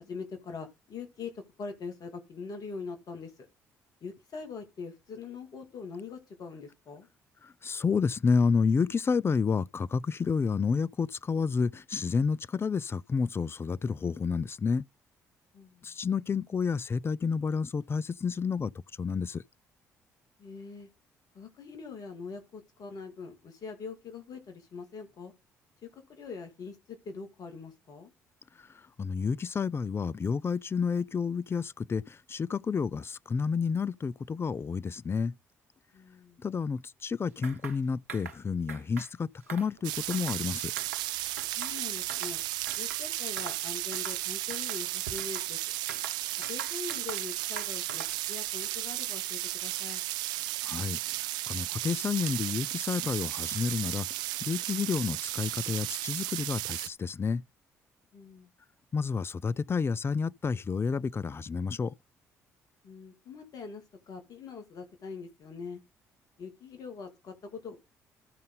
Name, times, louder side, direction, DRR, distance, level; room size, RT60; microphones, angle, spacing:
voice 1, 0.0-3.5 4.0-7.1 15.5-15.9 20.4-20.9 21.3-25.3 25.8-28.1 35.9-36.4 41.6-42.4 42.8-45.6 46.5-50.0 58.1-58.5 62.8-65.8 66.4-67.8, left 5 dB, 55° left, 2.3 m, -43 dB
voice 2, 7.6-14.8 15.8-18.7 19.0-19.4 29.0-35.3 36.4-40.7 50.6-51.0 51.5-57.4 58.9-61.9, left 5 dB, 30° left, 0.4 m, -30 dB
sound 1, 37.4-37.8 38.1-38.4 38.7-39.1 39.4-40.4 40.8-41.1 41.4-42.4 42.7-43.0 43.4-43.6 43.9-44.2 44.5-45.5 45.9-47.3 47.6-48.2, right 6 dB, 90° right, 0.9 m, -43 dB
sound 2, 39.8-56.9, right 16 dB, 70° right, 0.4 m, -34 dB
14.0 x 5.3 x 3.8 m
hypercardioid pair, 50°, 8 cm